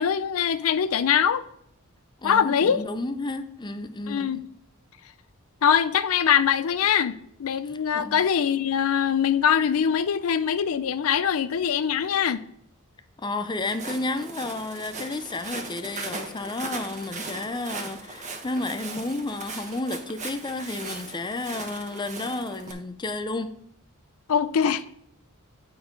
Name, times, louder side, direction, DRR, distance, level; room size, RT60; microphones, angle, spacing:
voice 1, 0.0-1.4 2.2-2.8 4.1-4.4 5.6-12.4 24.3-24.8, left 8 dB, 70° left, 0.4 m, -23 dB
voice 2, 2.2-4.4 7.6-8.2 13.2-23.5, left 2 dB, 20° left, 0.5 m, -32 dB
Walk footsteps, 13.6-22.7, right 3 dB, 35° right, 1.1 m, -38 dB
8.9 x 4.5 x 5.2 m
head